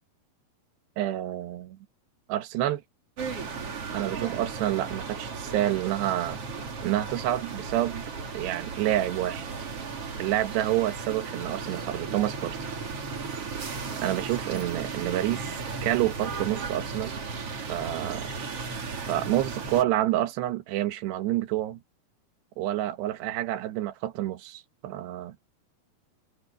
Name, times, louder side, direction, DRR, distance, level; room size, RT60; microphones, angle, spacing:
voice 1, 1.0-1.8 2.3-2.8 3.9-6.4 6.8-8.0 8.3-9.4 10.2-12.6 14.0-15.5 15.8-17.2 17.5-18.3 19.1-21.8 22.6-25.4, right 14 dB, 90° right, 3.4 m, -28 dB
sound 1, 3.2-19.8, right 4 dB, 40° right, 3.2 m, -35 dB
omnidirectional pair, 4.7 m